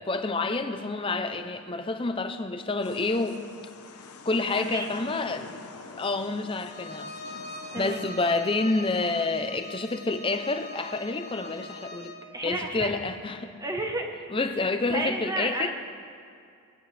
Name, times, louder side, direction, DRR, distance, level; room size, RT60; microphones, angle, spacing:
voice 1, 0.0-3.4 4.2-5.7 6.0-7.1 7.8-12.1 12.4-13.5 14.3-15.7, left 3 dB, 25° left, 8 dB, 0.6 m, -28 dB
sound 1, 2.8-8.1, left 4 dB, 90° left, 1.0 m, -46 dB
voice 2, 4.5-4.9 7.7-8.0 12.3-12.9 13.6-14.1 14.8-15.7, right 1 dB, 15° right, 2 dB, 1.1 m, -31 dB
Bowed string instrument, 6.7-12.3, left 1 dB, 45° left, 1.4 m, -42 dB
18.5 x 16.0 x 3.4 m, 2.4 s
head